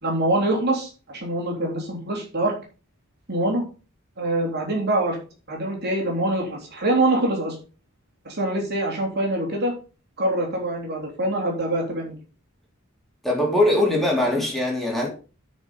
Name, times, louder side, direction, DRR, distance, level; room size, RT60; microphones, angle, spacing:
voice 1, 0.0-2.5 3.3-3.6 4.2-5.2 5.5-7.6 8.3-9.7 10.2-12.2, right 1 dB, 50° right, 3.5 m, -24 dB
voice 2, 13.2-15.1, left 1 dB, ahead, 3.7 m, -21 dB
9.4 x 5.6 x 5.5 m
head